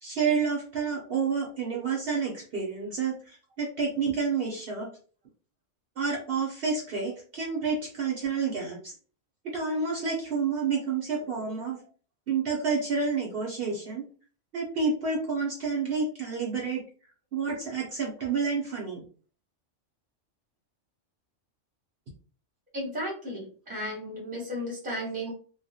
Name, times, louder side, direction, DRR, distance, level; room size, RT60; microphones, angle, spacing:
voice 1, 0.0-4.9 6.0-8.9 9.4-11.8 12.3-14.0 14.5-16.8 17.3-19.0, right 5 dB, 60° right, -1 dB, 0.8 m, -29 dB
voice 2, 22.7-25.3, equal, 10° right, -3 dB, 0.7 m, -34 dB
2.3 x 2.1 x 2.6 m, 0.40 s
omnidirectional pair, 1.3 m